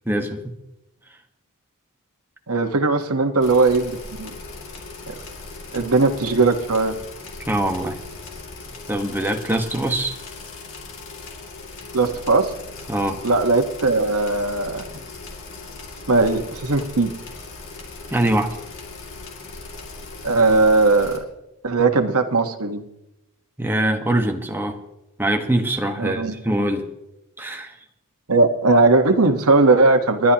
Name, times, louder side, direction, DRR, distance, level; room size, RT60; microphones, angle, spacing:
voice 1, 0.1-0.6 7.5-8.0 8.9-10.2 12.9-13.2 18.1-18.6 23.6-24.8 25.2-26.9 27.4-27.8, right 1 dB, 10° right, 3 dB, 1.2 m, -23 dB
voice 2, 2.5-4.3 5.1-5.2 5.7-6.9 11.9-12.5 13.2-15.0 16.1-17.1 20.2-21.2 21.6-22.8 26.0-26.3 28.3-30.3, right 3 dB, 75° right, 7 dB, 1.2 m, -18 dB
sound 1, 3.4-21.2, left 3 dB, 60° left, 2.4 m, -38 dB
29.5 x 11.0 x 2.9 m, 0.89 s
head